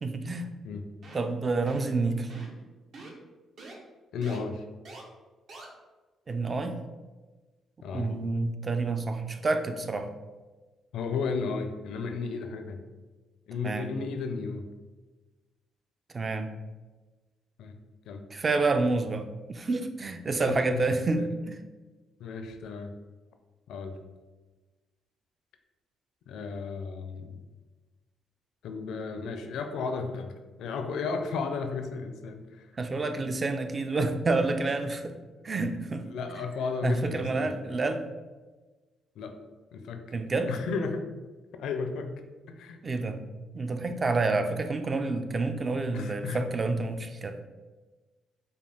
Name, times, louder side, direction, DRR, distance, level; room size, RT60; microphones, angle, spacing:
voice 1, 0.0-0.5 1.1-2.3 6.3-6.8 7.9-10.1 13.6-13.9 16.1-16.5 18.3-21.6 32.8-35.2 35.4-36.1 36.8-38.1 40.1-40.5 42.8-43.3 43.5-47.4, right 3 dB, 30° right, 7 dB, 0.4 m, -28 dB
sound 1, 1.0-1.3 1.7-1.9 2.3-2.6 2.9-3.1 3.6-3.7 4.2-4.4 4.9-5.0 5.5-5.7, right 2 dB, 60° right, 0.9 m, -45 dB
voice 2, 4.1-4.6 7.8-8.1 10.9-12.8 13.5-14.7 17.6-17.8 18.1-18.2 20.3-20.8 21.1-21.3 22.2-22.9 23.7-24.0 26.3-27.4 28.6-32.7 36.1-37.5 39.2-39.4 39.7-40.0 40.5-41.0 41.6-42.1 42.5-42.8 45.9-46.5, left 5 dB, 80° left, 7 dB, 0.4 m, -34 dB
5.2 x 2.3 x 3.4 m, 1.3 s
cardioid pair, 90°, 0 cm